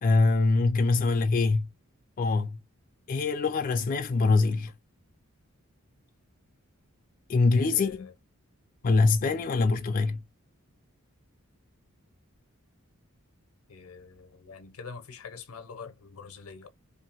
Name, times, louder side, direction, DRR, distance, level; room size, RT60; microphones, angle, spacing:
voice 1, 0.0-1.7 2.2-2.6 3.1-4.7 7.3-8.1 8.8-10.2, left 3 dB, 40° left, 0.3 m, -24 dB
voice 2, 7.5-8.1 13.7-16.7, left 5 dB, 85° left, 0.6 m, -45 dB
2.6 x 2.4 x 2.8 m
head